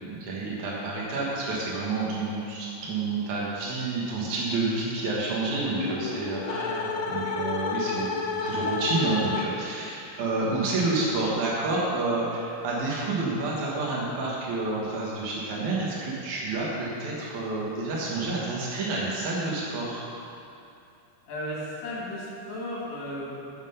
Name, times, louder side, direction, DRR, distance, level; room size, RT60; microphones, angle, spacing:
voice 1, 0.0-6.7 7.1-20.0, right 3 dB, 70° right, -5 dB, 1.8 m, -29 dB
sound 1, 5.6-9.8, left 4 dB, 85° left, 3.4 m, -30 dB
voice 2, 6.4-7.1 21.3-23.5, left 1 dB, 70° left, -6 dB, 4.7 m, -35 dB
14.5 x 5.8 x 5.5 m, 2.6 s
omnidirectional pair, 5.5 m